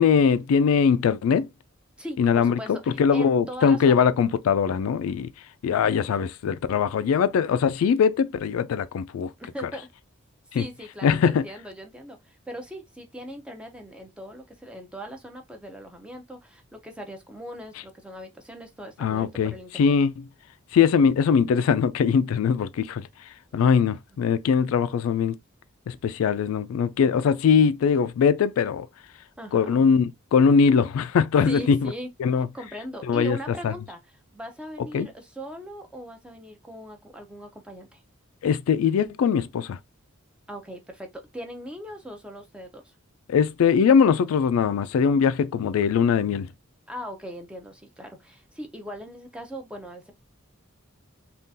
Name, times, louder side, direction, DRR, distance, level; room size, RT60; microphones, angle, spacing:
voice 1, 0.0-1.5 2.2-5.3 5.6-9.3 10.5-10.7 11.0-11.4 19.0-20.1 20.7-23.1 23.5-25.4 25.9-28.9 29.5-31.9 32.2-32.5 33.1-33.4 33.6-33.7 34.9-35.1 38.4-39.8 43.3-46.5, left 6 dB, 85° left, 0.3 m, -21 dB
voice 2, 2.0-4.1 9.5-9.9 10.5-19.9 29.4-29.8 31.5-32.1 32.5-38.0 40.5-42.9 46.9-50.1, equal, 5° right, 0.5 m, -39 dB
3.6 x 2.4 x 2.6 m
head